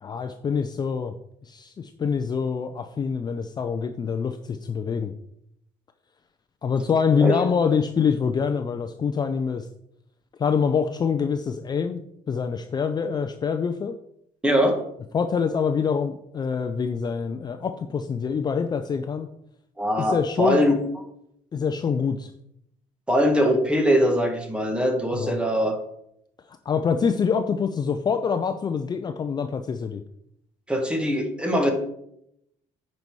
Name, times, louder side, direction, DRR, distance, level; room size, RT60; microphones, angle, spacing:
voice 1, 0.0-1.1 1.4-5.1 6.6-9.7 10.4-12.0 12.3-14.0 15.1-19.3 20.0-20.6 21.5-22.3 25.1-25.4 26.5-30.0, left 6 dB, 30° left, 8 dB, 0.5 m, -25 dB
voice 2, 14.4-14.8 19.8-20.8 23.1-25.8 30.7-31.7, equal, 5° right, 4 dB, 1.5 m, -22 dB
9.6 x 5.4 x 4.7 m, 0.76 s
cardioid pair, 130°, 14 cm